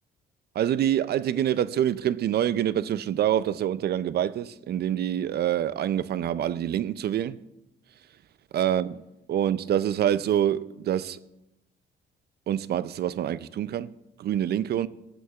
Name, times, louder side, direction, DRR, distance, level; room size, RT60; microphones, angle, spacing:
voice 1, 0.6-7.4 8.5-9.0 9.3-11.2 12.5-13.9 14.2-14.9, right 10 dB, 55° right, 0.4 m, -26 dB
17.0 x 6.3 x 2.4 m
cardioid pair, 90°, 20 cm